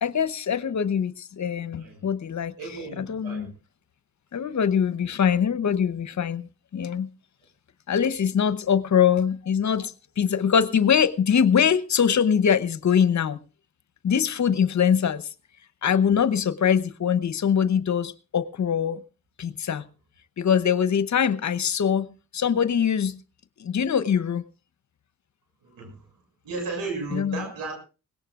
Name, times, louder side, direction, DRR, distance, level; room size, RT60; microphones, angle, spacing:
voice 1, 0.0-2.5 3.0-3.5 4.3-6.5 6.7-7.1 7.9-13.4 14.0-15.3 15.8-19.0 19.4-19.8 20.4-23.2 23.6-24.4 27.1-27.4, left 7 dB, 55° left, 0.9 m, -23 dB
voice 2, 2.6-3.5 25.6-25.9 26.4-27.8, right 3 dB, 85° right, 6.5 m, -34 dB
21.0 x 17.5 x 2.5 m
supercardioid pair, 45°, 34 cm